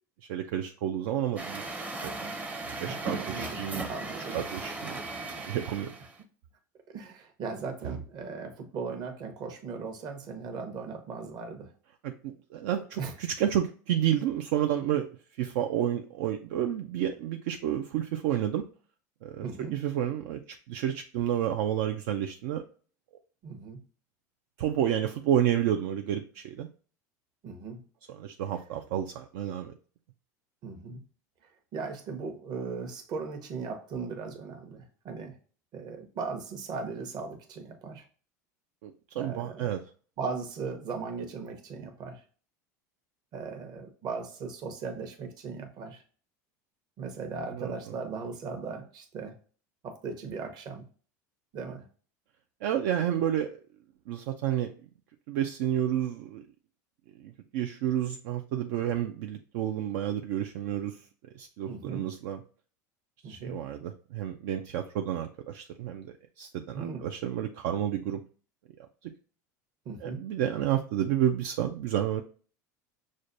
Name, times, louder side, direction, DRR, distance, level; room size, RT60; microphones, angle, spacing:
voice 1, 0.3-1.6 2.0-2.3 2.8-3.8 4.3-5.0 5.5-5.9 12.0-15.1 15.4-18.6 19.2-19.5 19.7-20.4 20.7-22.6 24.6-26.7 28.2-29.7 38.8-39.8 47.6-47.7 52.6-53.6 54.1-54.7 55.3-56.4 57.2-61.0 61.4-62.4 63.3-66.1 66.4-68.2 70.0-72.2, right 10 dB, 70° right, 4 dB, 0.4 m, -30 dB
Truck, 1.4-6.2, right 2 dB, 15° right, 0.6 m, -37 dB
voice 2, 2.8-4.4 6.9-11.7 13.0-13.2 19.4-19.8 23.4-23.8 27.4-27.8 30.6-31.0 31.4-35.4 35.7-38.1 39.2-39.7 40.2-42.2 43.3-46.0 47.0-49.4 49.8-50.8 51.5-51.9 61.7-62.1 63.2-63.6 66.7-67.1 69.8-70.3, right 5 dB, 45° right, 5 dB, 0.9 m, -38 dB
6.2 x 2.2 x 2.6 m, 0.41 s
supercardioid pair, 110°, 9 cm